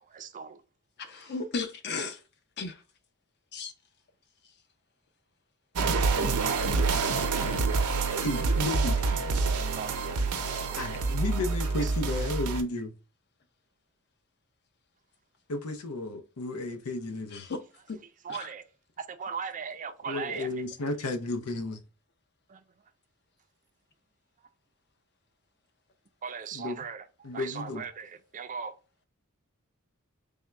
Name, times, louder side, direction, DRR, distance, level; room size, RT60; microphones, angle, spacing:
voice 1, 0.1-0.6 1.2-1.3 9.4-9.9 10.7-11.1 11.8-11.9 18.2-18.7 19.0-20.5 22.5-22.6 26.2-28.7, right 6 dB, 35° right, 0.4 m, -39 dB
voice 2, 1.0-2.2 2.6-2.8 3.5-3.7 17.3-17.6 17.9-18.0 18.3-18.5, left 4 dB, 50° left, 0.6 m, -35 dB
sound 1, 5.7-12.6, right 4 dB, 80° right, 0.6 m, -27 dB
voice 3, 6.7-7.7 8.2-9.1 10.8-12.9 15.5-17.5 20.0-21.8 26.5-26.8 27.2-27.8, left 2 dB, 90° left, 0.7 m, -33 dB
3.6 x 2.1 x 4.3 m
head